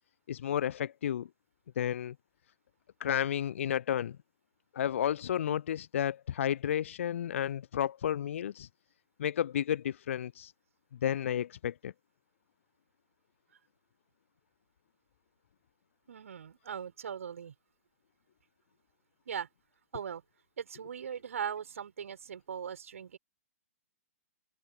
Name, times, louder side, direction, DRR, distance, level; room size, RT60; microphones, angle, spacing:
voice 1, 0.3-1.3 1.8-2.1 3.0-4.2 4.7-8.7 9.2-10.5 11.0-11.9, left 10 dB, 50° left, 0.5 m, -32 dB
voice 2, 16.1-17.5 19.2-19.5 19.9-20.2 20.6-23.2, right 8 dB, 55° right, 6.7 m, -39 dB
figure-of-eight pair, 120°, 9 cm